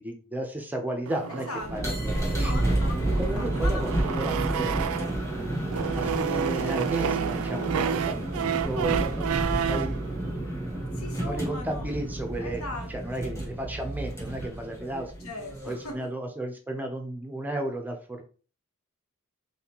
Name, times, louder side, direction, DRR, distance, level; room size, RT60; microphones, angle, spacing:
voice 1, 0.0-1.5 1.7-2.5 3.1-4.8 5.9-8.2 8.6-9.2 9.6-9.9 11.2-12.6 12.9-15.1 15.6-18.2, right 1 dB, 10° right, 3 dB, 0.5 m, -33 dB
sound 1, 1.1-5.3 5.7-10.0, right 8 dB, 70° right, 0.4 m, -30 dB
voice 2, 1.3-2.0 2.3-3.8 4.2-4.7 5.8-6.0 11.0-11.9 12.4-12.9 13.2-13.3 15.2-16.0, left 2 dB, 75° left, 3 dB, 1.1 m, -39 dB
sound 2, 1.6-16.0, right 1 dB, 15° left, 1.3 m, -30 dB
4.1 x 3.6 x 2.9 m, 0.39 s
head